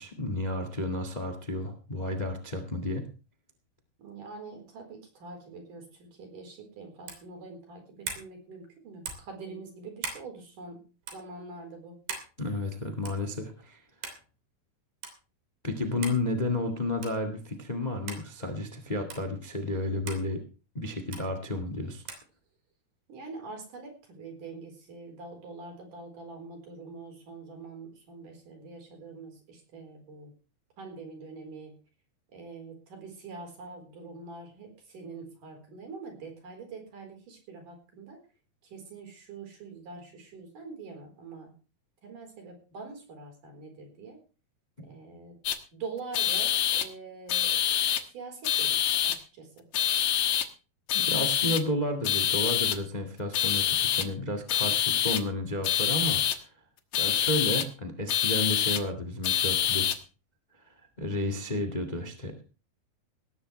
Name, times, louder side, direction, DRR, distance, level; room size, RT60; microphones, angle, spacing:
voice 1, 0.0-3.0 12.4-13.8 15.6-20.4 20.7-22.0 44.8-44.9 50.9-56.2 57.0-60.0 61.0-62.4, left 1 dB, 90° left, 7 dB, 0.4 m, -32 dB
voice 2, 4.0-10.8 11.1-12.0 23.1-30.3 30.8-31.7 32.3-38.2 38.6-41.5 42.0-44.2 44.8-45.4 45.7-47.6 48.1-48.8 49.1-49.7, right 4 dB, 55° right, 4 dB, 5.7 m, -44 dB
sound 1, 7.0-7.3 8.0-8.3 9.0-9.3 10.0-10.3 11.0-11.2 12.1-12.3 13.1-13.3 14.0-14.2 15.0-15.2 16.0-16.2 17.0-17.2 18.1-18.2 19.1-19.2 20.1-20.2 21.1-21.3 22.1-22.3, right 5 dB, 80° right, 4.9 m, -38 dB
sound 2, 45.4-45.5 46.1-46.8 47.3-48.0 48.4-49.2 49.7-50.4 50.9-51.6 52.0-52.7 53.3-54.0 54.5-55.2 55.6-56.3 56.9-57.6 58.1-58.8 59.2-59.9, left 10 dB, 65° left, 1.5 m, -26 dB
18.0 x 14.0 x 3.3 m, 0.35 s
omnidirectional pair, 4.4 m